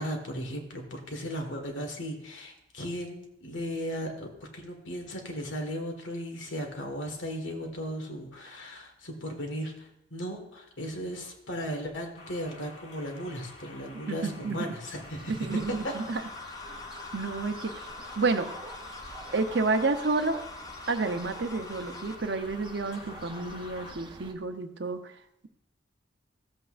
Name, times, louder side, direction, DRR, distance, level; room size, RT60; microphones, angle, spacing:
voice 1, 0.0-15.9, equal, 85° left, 3 dB, 1.7 m, -36 dB
sound 1, 12.1-23.9, left 2 dB, 60° left, 1.8 m, -48 dB
voice 2, 14.1-14.7 15.3-16.2 17.1-17.7 18.2-18.5 19.3-20.4 20.9-25.0, right 3 dB, 65° right, 8 dB, 0.7 m, -30 dB
sound 2, 15.0-24.3, right 2 dB, 25° right, 0.7 m, -49 dB
sound 3, 15.5-22.2, left 3 dB, 20° left, 0.4 m, -45 dB
15.0 x 7.9 x 2.5 m, 0.80 s
head